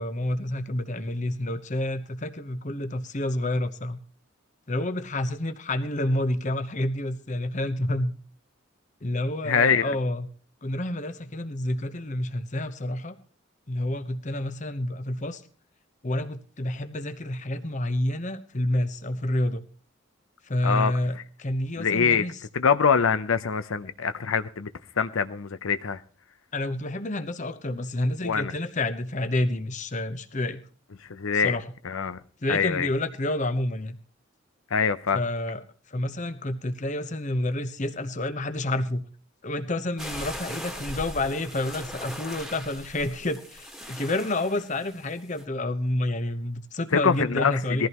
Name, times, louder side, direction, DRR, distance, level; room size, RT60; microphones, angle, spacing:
voice 1, 0.0-4.0 4.7-8.1 9.0-10.3 10.6-13.2 13.7-15.4 16.0-19.6 20.4-22.4 26.5-30.6 31.3-31.6 32.4-34.0 35.1-35.6 35.9-39.0 39.4-47.9, left 1 dB, 35° left, 0.9 m, -29 dB
voice 2, 9.4-9.9 20.6-20.9 21.8-22.2 22.5-24.7 25.0-26.0 28.2-28.5 31.1-31.5 31.8-32.2 32.5-32.9 34.7-35.2 46.9-47.9, left 6 dB, 85° left, 0.7 m, -24 dB
sound 1, 40.0-45.4, equal, ahead, 1.6 m, -39 dB
21.0 x 14.5 x 3.0 m
head